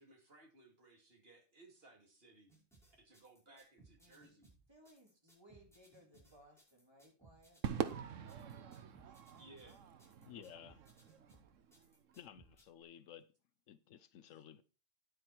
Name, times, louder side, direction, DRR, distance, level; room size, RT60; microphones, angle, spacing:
voice 1, 0.0-2.5 3.0-4.5 9.4-9.8, right 2 dB, 50° right, 2.8 m, -61 dB
sound 1, 2.5-12.6, right 3 dB, ahead, 5.2 m, -66 dB
voice 2, 4.7-7.6 8.7-8.8, equal, 20° right, 3.1 m, -64 dB
Crowd / Fireworks, 7.6-12.1, right 8 dB, 80° right, 1.2 m, -44 dB
voice 3, 10.2-10.8 12.2-13.3 13.7-14.6, left 10 dB, 85° left, 1.0 m, -55 dB
9.6 x 8.9 x 4.5 m
omnidirectional pair, 1.3 m